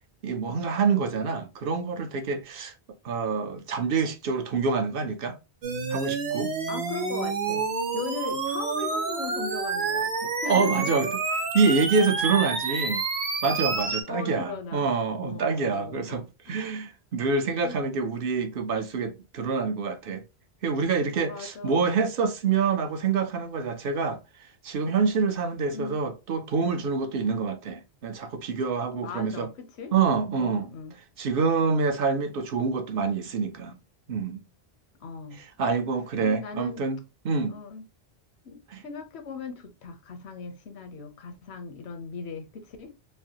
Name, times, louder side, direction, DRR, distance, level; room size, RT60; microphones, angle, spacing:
voice 1, 0.2-2.7 3.0-5.4 5.9-6.5 10.5-11.1 11.5-13.0 13.4-20.2 20.6-24.2 24.6-29.5 29.9-30.7 31.2-33.8 34.1-34.4 35.4-37.0 37.2-37.5 38.7-38.8, right 5 dB, 65° right, 0.7 m, -26 dB
sound 1, 5.6-14.0, right 4 dB, 80° right, 1.1 m, -29 dB
voice 2, 6.7-7.6 7.9-10.9 14.1-14.9 15.2-16.6 17.6-17.8 21.2-21.9 25.7-26.0 28.9-29.9 30.4-30.9 35.0-35.4 36.2-36.8 37.5-37.9 38.4-43.0, left 5 dB, 80° left, 0.9 m, -38 dB
3.2 x 2.5 x 2.8 m
omnidirectional pair, 1.1 m